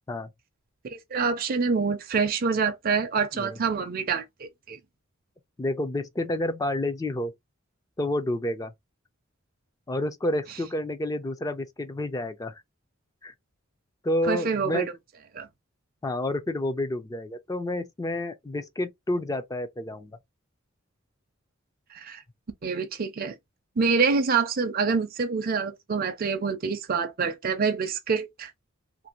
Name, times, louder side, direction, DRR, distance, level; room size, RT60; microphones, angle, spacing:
voice 1, 0.8-4.8 14.3-14.9 15.3-15.5 21.9-22.2 22.6-23.3 23.8-28.5, right 5 dB, 45° right, 0.5 m, -26 dB
voice 2, 5.6-7.3 8.0-8.7 9.9-12.6 13.2-13.3 14.0-14.9 16.0-20.2, left 1 dB, 15° left, 0.4 m, -29 dB
2.6 x 2.6 x 2.9 m
head